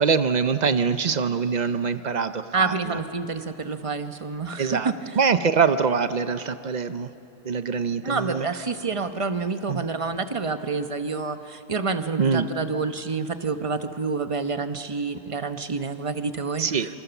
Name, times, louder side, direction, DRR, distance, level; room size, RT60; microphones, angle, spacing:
voice 1, 0.0-3.0 4.6-7.1 7.4-8.5 9.7-9.8 12.2-12.5 16.6-16.9, right 5 dB, 90° right, 10 dB, 0.3 m, -24 dB
voice 2, 2.5-4.9 8.0-16.7, right 4 dB, 25° right, 8 dB, 0.8 m, -28 dB
27.5 x 26.5 x 7.1 m, 2.7 s
omnidirectional pair, 1.8 m